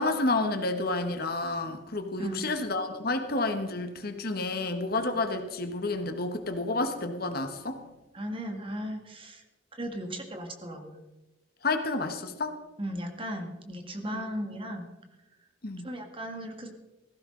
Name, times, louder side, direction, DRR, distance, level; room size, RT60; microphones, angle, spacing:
voice 1, 0.0-7.8 11.6-12.6 14.1-14.2 15.6-15.9, left 2 dB, 55° left, 7 dB, 1.3 m, -30 dB
voice 2, 8.1-9.4 9.7-10.9 12.8-14.9 15.8-16.7, equal, 30° right, 4 dB, 1.9 m, -36 dB
17.5 x 15.5 x 3.9 m, 1.0 s
head